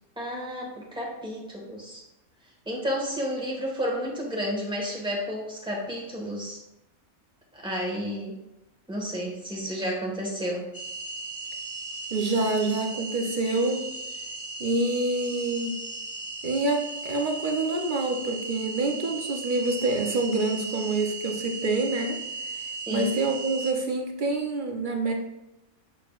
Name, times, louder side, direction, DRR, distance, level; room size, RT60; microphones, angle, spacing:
voice 1, 0.2-2.0 2.6-6.6 7.5-8.4 8.9-10.7 22.9-23.1, equal, 5° right, -2 dB, 1.5 m, -31 dB
sound 1, 10.7-23.7, right 3 dB, 30° left, 0.4 m, -37 dB
voice 2, 12.1-13.8 14.6-15.8 16.4-22.2 22.5-22.6 22.9-25.1, right 2 dB, 45° right, 3 dB, 0.9 m, -27 dB
6.9 x 6.4 x 2.4 m, 0.91 s
omnidirectional pair, 1.3 m